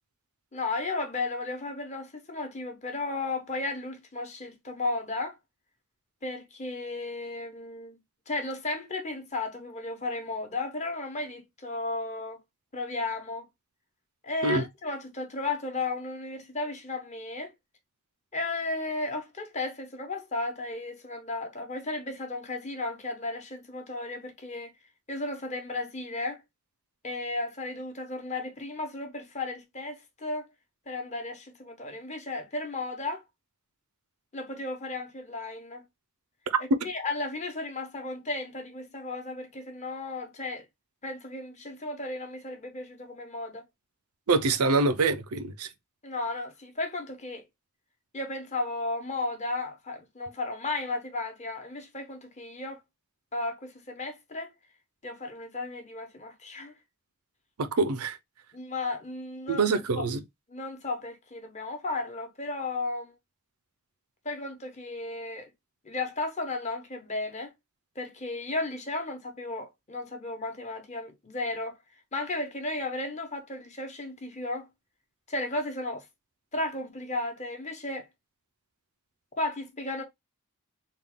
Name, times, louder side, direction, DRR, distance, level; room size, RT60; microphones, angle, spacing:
voice 1, 0.5-5.4 6.2-8.0 8.3-12.4 12.7-13.5 14.2-17.5 18.3-24.7 25.1-26.4 27.0-30.5 30.9-33.2 34.3-35.8 36.8-40.6 41.0-43.6 46.0-47.4 48.1-52.8 53.3-54.5 55.0-56.7 58.5-59.6 60.0-60.1 60.5-63.1 64.2-65.5 65.8-67.5 67.9-71.7 72.1-74.7 75.3-76.1 76.5-78.1 79.4-80.0, left 2 dB, 30° left, 0.9 m, -34 dB
voice 2, 36.5-36.9 44.3-45.7 57.6-58.2 59.5-60.2, right 3 dB, 90° right, 0.6 m, -25 dB
3.7 x 2.3 x 3.6 m
head